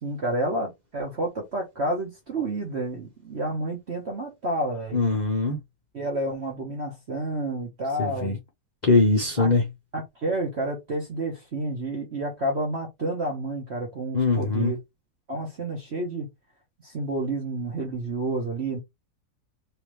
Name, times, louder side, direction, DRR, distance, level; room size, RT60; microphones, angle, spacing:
voice 1, 0.0-5.0 5.9-8.4 9.4-9.5 9.9-14.8 15.3-16.3 16.8-18.8, right 1 dB, 45° right, 1.1 m, -30 dB
voice 2, 4.9-5.6 8.0-8.4 8.8-9.6 14.1-14.7, left 3 dB, 50° left, 0.5 m, -22 dB
3.4 x 3.1 x 3.0 m
omnidirectional pair, 1.8 m